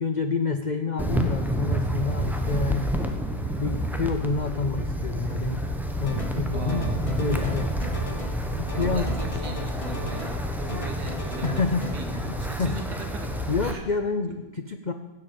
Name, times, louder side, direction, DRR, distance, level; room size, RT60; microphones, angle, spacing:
voice 1, 0.0-2.9 3.6-5.7 6.0-7.7 8.5-9.1 10.7-10.9 11.4-12.8 13.5-14.9, left 4 dB, 60° left, 7 dB, 0.4 m, -28 dB
Wind, 1.0-13.7, equal, ahead, 1.1 m, -29 dB
sound 1, 6.0-6.4 6.7-8.4 8.7-10.4 10.7-11.9, left 2 dB, 20° left, 1.3 m, -39 dB
voice 2, 6.5-7.0 8.7-11.6 11.9-13.3 13.6-13.8 14.3-14.4, right 1 dB, 70° right, 3 dB, 2.6 m, -38 dB
16.0 x 7.7 x 8.5 m, 1.1 s
omnidirectional pair, 1.8 m